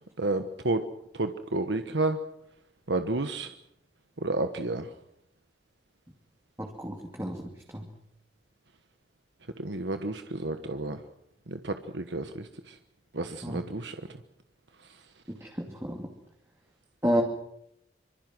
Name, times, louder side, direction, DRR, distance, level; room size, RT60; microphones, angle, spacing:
voice 1, 0.2-0.8 1.2-2.2 2.9-3.5 4.2-4.9 9.6-11.0 11.5-12.5 13.1-14.0, right 2 dB, 85° right, 7 dB, 1.3 m, -30 dB
voice 2, 6.6-7.4 7.7-7.9 13.4-13.7 15.3-16.1 17.0-17.2, equal, 15° right, 1 dB, 2.5 m, -30 dB
25.5 x 25.0 x 6.2 m, 0.76 s
head